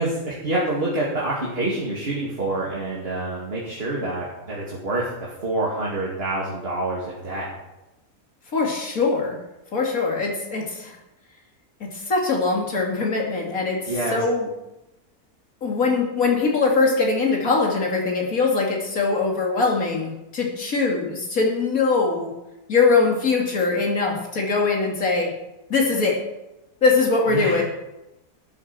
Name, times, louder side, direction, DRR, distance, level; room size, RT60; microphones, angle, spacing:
voice 1, 0.0-7.5 13.9-14.2 27.3-27.6, right 2 dB, 40° right, -5 dB, 2.7 m, -27 dB
voice 2, 8.5-9.4 9.7-11.0 11.8-14.5 15.6-22.3 22.7-25.3 25.7-26.2 26.8-27.6, left 4 dB, 60° left, -1 dB, 3.0 m, -22 dB
13.0 x 8.6 x 6.2 m, 0.96 s
omnidirectional pair, 1.7 m